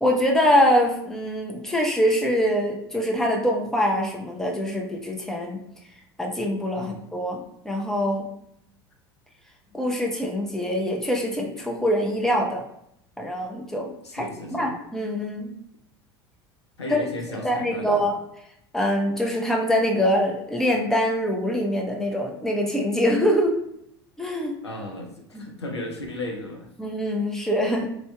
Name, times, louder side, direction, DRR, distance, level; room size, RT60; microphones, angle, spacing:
voice 1, 0.0-5.6 6.2-8.3 9.7-12.6 13.2-15.5 16.9-17.0 17.4-18.2 18.7-23.6 24.2-24.6 25.3-25.5 26.8-27.9, equal, 5° left, 0 dB, 0.7 m, -24 dB
voice 2, 14.0-14.7 16.8-18.1 24.6-26.7, left 1 dB, 85° left, 1 dB, 0.6 m, -35 dB
4.6 x 2.7 x 2.3 m, 0.76 s
figure-of-eight pair, 75°, 14 cm